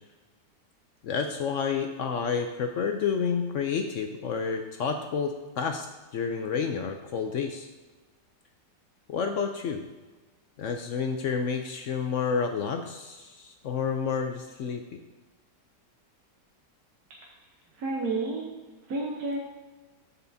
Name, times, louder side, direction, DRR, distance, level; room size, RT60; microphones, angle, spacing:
voice 1, 1.0-5.9 6.1-7.7 9.1-9.8 10.6-14.8, left 6 dB, 70° left, 5 dB, 0.7 m, -29 dB
voice 2, 17.7-18.4 18.9-19.4, right 3 dB, 60° right, -3 dB, 1.5 m, -30 dB
13.5 x 5.6 x 2.7 m, 1.2 s
omnidirectional pair, 1.9 m